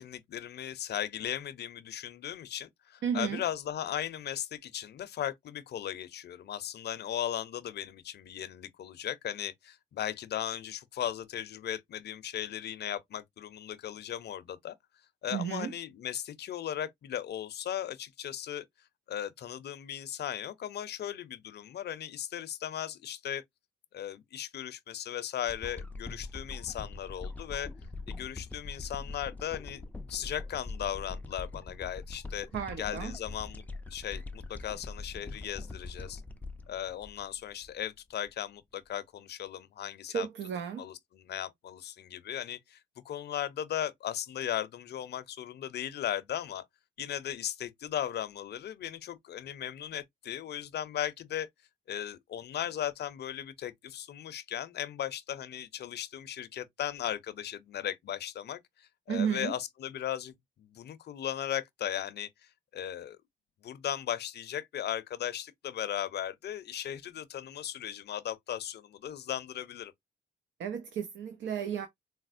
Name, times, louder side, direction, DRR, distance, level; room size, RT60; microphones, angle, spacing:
voice 1, 0.0-14.7 15.2-18.6 19.1-23.4 23.9-27.7 28.1-32.5 32.8-33.6 33.9-36.2 36.7-40.3 40.8-42.8 43.0-46.6 47.0-51.5 51.9-63.2 63.6-69.9, left 10 dB, 55° left, 0.6 m, -37 dB
voice 2, 3.0-3.4 15.3-15.7 32.5-33.2 40.1-40.9 59.1-59.6 70.6-71.9, right 8 dB, 65° right, 0.6 m, -33 dB
sound 1, 25.5-37.8 38.3-38.4, left 3 dB, 10° left, 0.4 m, -43 dB
4.1 x 2.1 x 2.5 m
cardioid pair, 90°, 20 cm